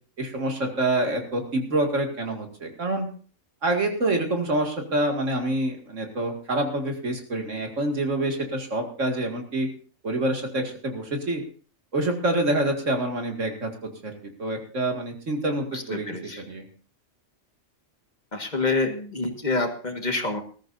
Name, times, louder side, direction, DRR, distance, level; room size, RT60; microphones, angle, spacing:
voice 1, 0.2-3.1 3.6-9.7 10.0-11.4 11.9-13.7 14.0-14.1 14.4-16.6, right 1 dB, 85° right, 3 dB, 2.5 m, -26 dB
voice 2, 15.7-16.4 18.3-20.4, left 3 dB, 35° left, 5 dB, 1.7 m, -27 dB
20.0 x 13.5 x 2.6 m, 0.41 s
omnidirectional pair, 1.3 m